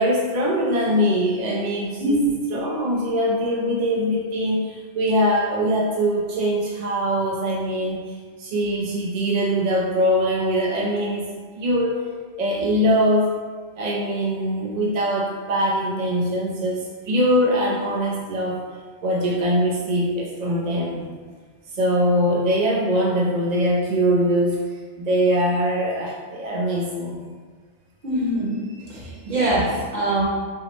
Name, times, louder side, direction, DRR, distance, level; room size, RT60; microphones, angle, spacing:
voice 1, 0.0-2.2 2.5-11.3 11.5-12.0 12.4-13.3 13.8-18.6 19.0-21.1 21.7-24.6 25.0-27.2 28.9-29.0 29.2-29.7, equal, 60° right, -3 dB, 0.4 m, -22 dB
voice 2, 2.0-2.4 28.0-28.6 28.9-30.3, right 1 dB, 40° right, -5 dB, 1.0 m, -23 dB
5.7 x 2.0 x 3.0 m, 1.5 s
omnidirectional pair, 1.2 m